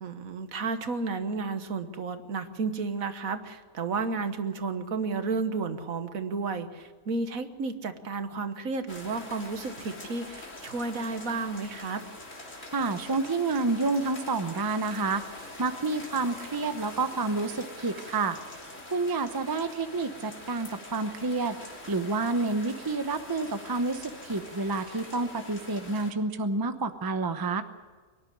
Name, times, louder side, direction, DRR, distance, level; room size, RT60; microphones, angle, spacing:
voice 1, 0.0-12.0, right 4 dB, 65° right, 9 dB, 1.6 m, -32 dB
sound 1, 8.9-26.1, left 1 dB, 55° left, 3.5 m, -44 dB
voice 2, 12.7-18.4 18.9-21.6 21.9-27.6, right 3 dB, 20° right, 9 dB, 0.7 m, -29 dB
23.5 x 11.0 x 10.0 m, 1.4 s
omnidirectional pair, 1.6 m